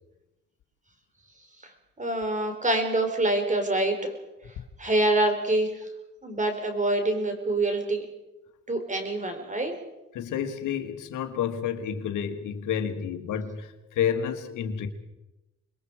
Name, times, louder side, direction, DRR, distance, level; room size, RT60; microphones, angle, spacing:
voice 1, 2.0-4.1 4.8-5.7 6.2-8.1 8.7-9.7, right 2 dB, 25° right, 6 dB, 4.4 m, -25 dB
voice 2, 10.1-14.9, left 8 dB, 80° left, 8 dB, 1.7 m, -30 dB
27.0 x 21.5 x 4.9 m, 0.98 s
cardioid pair, 90°, 30 cm